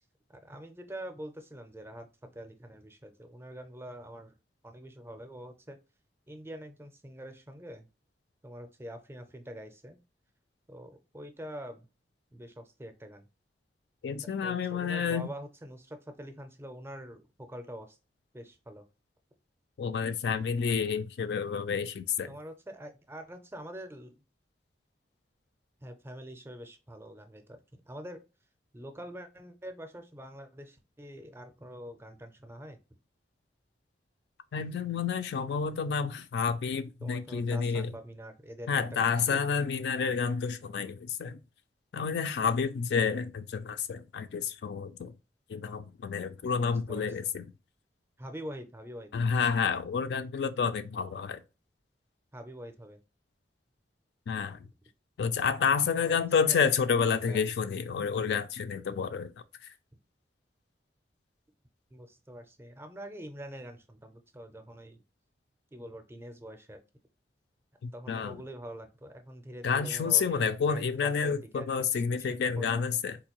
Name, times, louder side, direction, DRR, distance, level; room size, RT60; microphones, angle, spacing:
voice 1, 0.3-4.3 4.6-5.8 6.3-7.9 8.4-10.0 10.7-11.9 12.3-13.3 14.4-18.0 18.3-18.9 22.3-24.2 25.8-27.6 27.9-28.2 28.7-32.8 37.0-39.4 46.6-47.1 48.2-49.1 52.3-53.0 55.9-56.6 57.2-57.4 61.9-65.0 65.7-66.8 67.9-71.7 72.1-72.3 72.6-72.9, equal, 15° right, 0.5 m, -45 dB
voice 2, 14.0-15.3 19.8-22.3 34.5-37.9 38.7-41.4 41.9-45.1 45.5-47.5 49.1-51.4 54.3-54.6 55.2-59.3 67.8-68.4 69.6-73.2, left 6 dB, 65° left, 0.3 m, -29 dB
3.7 x 2.6 x 2.9 m
head